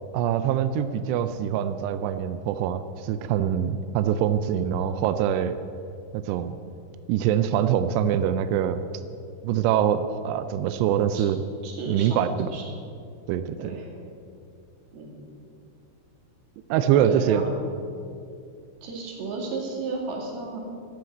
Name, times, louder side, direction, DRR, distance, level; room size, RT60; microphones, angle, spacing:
voice 1, 0.1-5.5 6.1-6.5 7.1-8.8 9.4-11.4 11.9-12.5 13.3-13.7 16.7-17.4, right 9 dB, 85° right, 10 dB, 2.4 m, -24 dB
voice 2, 11.6-12.7 13.6-13.9 14.9-15.1 17.1-17.6 18.8-20.6, right 3 dB, 60° right, -1 dB, 4.2 m, -33 dB
13.0 x 12.0 x 8.0 m, 2.4 s
omnidirectional pair, 5.5 m